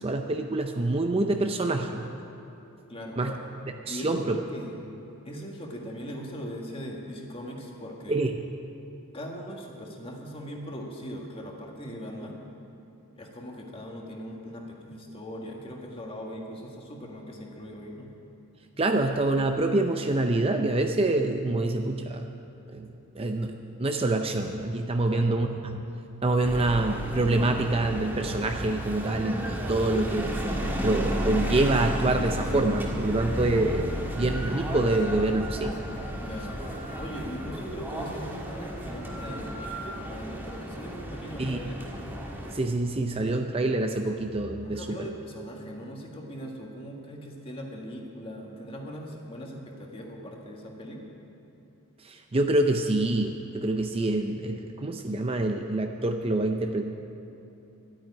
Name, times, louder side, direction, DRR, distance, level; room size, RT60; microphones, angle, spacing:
voice 1, 0.0-2.1 3.2-3.3 3.9-4.4 8.1-8.3 18.8-22.3 22.7-22.9 23.1-25.8 26.2-30.3 30.8-35.8 41.4-41.6 42.5-45.1 52.0-56.8, right 2 dB, 25° right, 4 dB, 0.5 m, -26 dB
voice 2, 2.9-3.4 3.9-4.9 5.3-8.2 9.1-12.4 13.2-18.1 25.0-25.5 36.2-36.6 37.0-41.8 44.6-51.0, equal, 25° left, 0 dB, 1.7 m, -40 dB
sound 1, 26.4-42.5, equal, 10° right, 1.5 m, -33 dB
12.5 x 9.1 x 9.8 m, 3.0 s
head